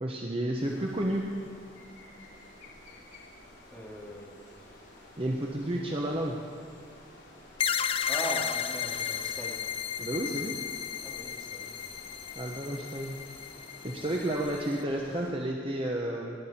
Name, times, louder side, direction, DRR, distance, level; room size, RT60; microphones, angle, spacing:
voice 1, 0.0-1.3 5.2-6.4 10.0-10.6 12.3-13.2 13.8-16.3, right 1 dB, 30° right, -1 dB, 0.8 m, -31 dB
sound 1, 0.5-15.3, left 1 dB, 80° left, 3.5 m, -52 dB
voice 2, 3.7-4.7 8.1-9.6 11.0-12.0 13.9-14.1, right 1 dB, 5° left, -6 dB, 2.4 m, -40 dB
sound 2, 7.6-14.8, left 8 dB, 30° left, 0.3 m, -34 dB
20.5 x 10.0 x 4.3 m, 2.3 s
head